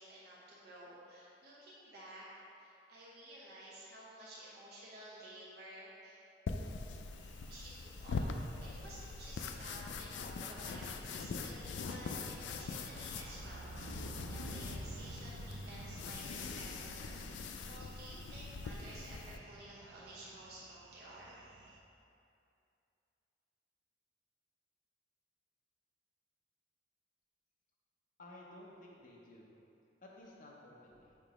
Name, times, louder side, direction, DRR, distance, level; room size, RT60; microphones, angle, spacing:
voice 1, 0.0-2.3 2.6-6.2 7.5-13.9 14.2-21.4, right 1 dB, 60° right, -6 dB, 0.8 m, -53 dB
sound 1, 6.5-19.4, left 4 dB, 75° left, 0.4 m, -43 dB
sound 2, 7.2-21.8, right 2 dB, 85° right, 0.5 m, -52 dB
voice 2, 28.2-29.5 30.0-31.1, left 1 dB, 45° left, -4 dB, 0.7 m, -55 dB
6.8 x 2.9 x 4.8 m, 2.6 s
head